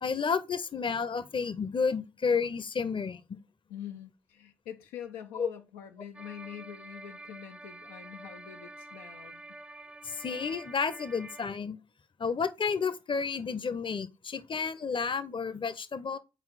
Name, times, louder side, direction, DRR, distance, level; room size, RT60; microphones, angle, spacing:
voice 1, 0.0-3.2 5.4-5.5 10.0-11.8 12.2-16.2, left 5 dB, 40° left, 0.7 m, -31 dB
voice 2, 3.7-9.6, left 10 dB, 85° left, 0.4 m, -45 dB
sound 1, 6.1-11.5, right 2 dB, 10° right, 0.4 m, -47 dB
4.4 x 4.0 x 5.6 m
hypercardioid pair, 40°, 14 cm